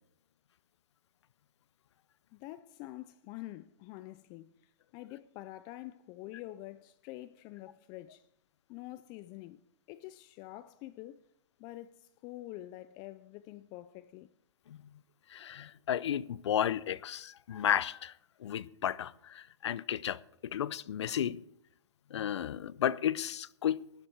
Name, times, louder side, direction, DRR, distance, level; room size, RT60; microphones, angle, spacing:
voice 1, 2.3-4.5 4.9-8.3 8.7-9.6 9.9-11.2 11.6-14.3, left 16 dB, 30° left, 0.4 m, -46 dB
voice 2, 15.3-18.1 18.4-21.4 22.1-24.1, left 10 dB, 70° left, 0.6 m, -33 dB
12.0 x 10.0 x 4.6 m
hypercardioid pair, 140°, 15 cm